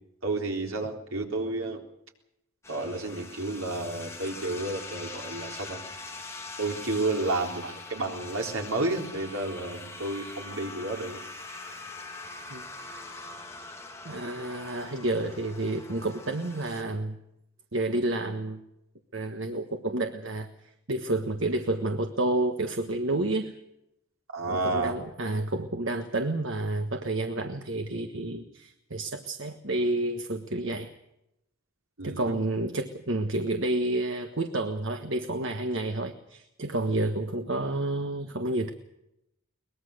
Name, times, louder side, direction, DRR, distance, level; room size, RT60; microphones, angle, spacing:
voice 1, 0.2-1.8 2.7-5.8 6.6-11.2 24.3-24.9 32.0-32.4, right 2 dB, 80° right, 2 dB, 3.9 m, -31 dB
sound 1, 2.6-16.8, left 3 dB, 15° left, 2.8 m, -43 dB
voice 2, 14.0-17.2 17.7-18.6 19.1-20.5 20.9-23.5 24.5-30.9 32.0-38.7, right 2 dB, 60° right, 6 dB, 1.4 m, -30 dB
22.5 x 20.5 x 6.6 m, 0.85 s
head